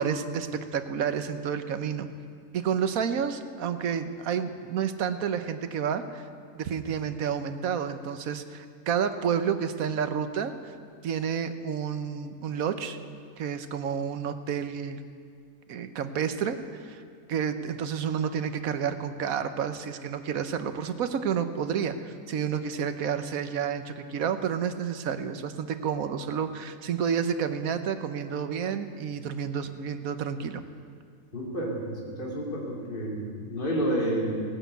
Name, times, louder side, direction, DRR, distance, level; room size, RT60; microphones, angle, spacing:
voice 1, 0.0-2.1 2.5-6.2 6.6-10.5 11.0-13.0 13.4-15.0 15.7-17.0 17.3-30.6, right 7 dB, 80° right, 10 dB, 1.3 m, -30 dB
voice 2, 31.3-34.4, right 1 dB, 40° left, -2 dB, 2.8 m, -30 dB
17.5 x 10.0 x 8.1 m, 2.2 s
omnidirectional pair, 1.5 m